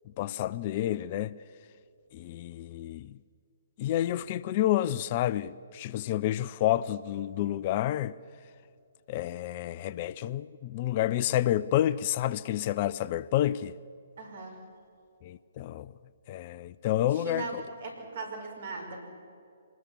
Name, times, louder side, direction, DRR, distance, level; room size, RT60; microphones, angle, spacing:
voice 1, 0.2-1.4 2.1-3.2 3.8-8.1 9.1-13.7 15.2-15.9 16.3-17.6, left 12 dB, 35° left, 0.5 m, -29 dB
voice 2, 14.2-14.6 17.1-19.0, right 3 dB, 55° right, 5.4 m, -39 dB
25.5 x 20.0 x 7.2 m
figure-of-eight pair, 130°, 0 cm